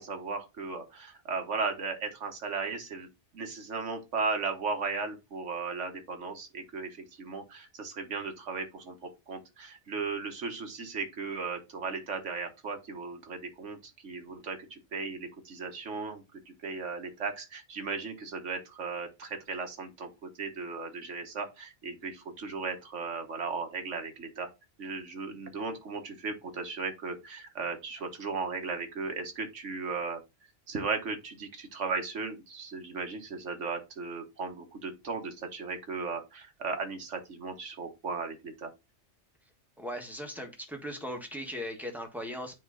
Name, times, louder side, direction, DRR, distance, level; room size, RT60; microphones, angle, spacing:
voice 1, 0.0-3.1 3.3-13.8 14.0-20.1 20.4-24.5 24.8-30.2 30.7-38.7, right 4 dB, 80° right, 1.6 m, -36 dB
voice 2, 39.8-42.5, equal, ahead, 1.4 m, -38 dB
9.2 x 3.2 x 3.8 m
omnidirectional pair, 1.2 m